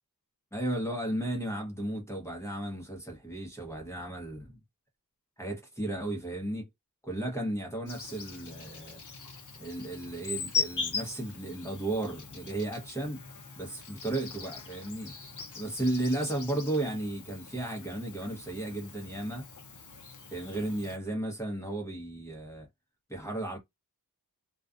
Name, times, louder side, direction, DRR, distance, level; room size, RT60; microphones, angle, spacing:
voice 1, 0.5-4.6 5.4-6.7 7.0-9.0 9.6-13.2 13.6-15.1 15.5-19.5 20.3-22.7 23.1-23.6, right 1 dB, 5° left, 0.9 m, -34 dB
Insect, 7.9-21.0, left 5 dB, 50° left, 0.7 m, -40 dB
2.4 x 2.3 x 2.4 m
wide cardioid pair, 75°, 39 cm